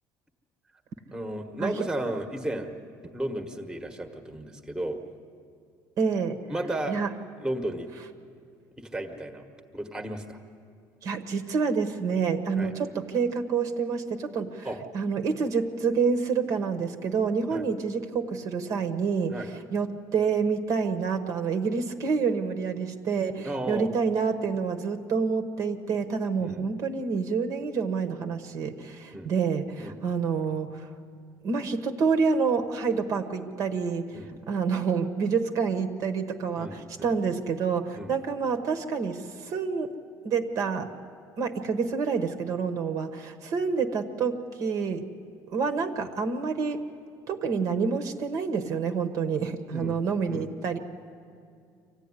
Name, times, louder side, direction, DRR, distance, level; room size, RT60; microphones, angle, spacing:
voice 1, 1.1-2.7 3.1-5.0 6.5-7.0 7.4-7.9 8.8-9.4 9.7-10.4 12.6-12.7 14.6-14.8 17.5-17.6 19.3-19.5 23.4-23.9 26.4-26.7 29.1-29.3 29.8-30.0 34.1-34.4 36.6-37.2 37.9-38.2 49.7-50.0 50.3-50.5, right 1 dB, 10° right, 6 dB, 1.3 m, -33 dB
voice 2, 6.0-6.4 6.9-7.1 11.0-14.7 14.9-19.4 19.7-30.9 31.4-34.2 34.5-39.9 40.2-40.9 41.4-45.1 45.5-46.8 47.3-50.8, right 5 dB, 45° right, 7 dB, 1.1 m, -28 dB
25.0 x 15.5 x 9.8 m, 2.4 s
cardioid pair, 165°, 8 cm